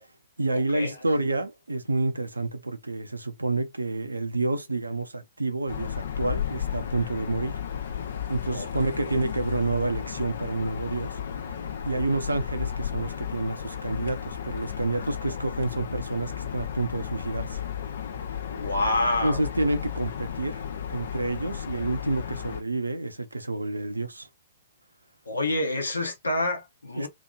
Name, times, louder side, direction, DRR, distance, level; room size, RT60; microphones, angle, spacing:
voice 1, 0.4-7.6 8.3-11.2 11.8-17.6 19.2-20.6 20.9-24.3 27.0-27.1, right 2 dB, 80° right, 0.5 m, -29 dB
sound 1, 5.7-22.6, left 8 dB, 60° left, 0.5 m, -34 dB
voice 2, 18.5-19.4 25.3-27.1, left 1 dB, 75° left, 0.9 m, -27 dB
2.9 x 2.5 x 2.3 m
figure-of-eight pair, 110°, 0 cm